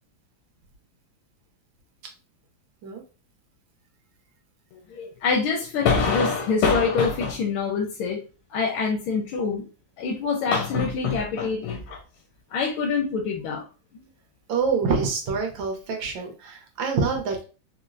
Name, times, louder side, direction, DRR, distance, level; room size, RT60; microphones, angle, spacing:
voice 1, 5.0-8.2 8.5-9.6 10.0-12.0 12.5-13.6, left 5 dB, 85° left, 0 dB, 1.4 m, -24 dB
voice 2, 14.5-17.4, right 5 dB, 75° right, 3 dB, 1.5 m, -26 dB
4.3 x 2.1 x 2.5 m, 0.34 s
omnidirectional pair, 2.2 m